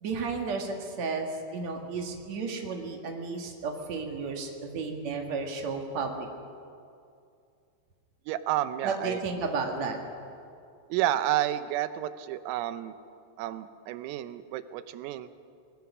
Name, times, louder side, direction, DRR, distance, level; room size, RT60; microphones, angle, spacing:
voice 1, 0.0-6.3 8.8-10.0, right 4 dB, 60° right, 3 dB, 1.8 m, -33 dB
voice 2, 8.3-9.2 10.9-12.9 13.4-15.3, right 13 dB, 85° right, 12 dB, 3.5 m, -30 dB
24.5 x 20.5 x 6.1 m, 2.5 s
omnidirectional pair, 5.9 m